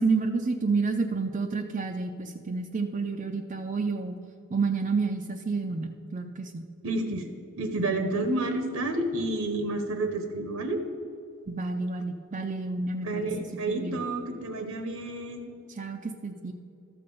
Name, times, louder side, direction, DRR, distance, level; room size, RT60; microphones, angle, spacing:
voice 1, 0.0-4.2 4.5-6.6 11.5-13.3 13.7-14.0 15.8-16.5, right 4 dB, 35° right, 4 dB, 0.4 m, -29 dB
voice 2, 6.8-7.3 7.6-10.8 13.0-15.5, right 2 dB, 75° right, 7 dB, 0.9 m, -30 dB
13.0 x 6.8 x 5.4 m, 2.8 s
head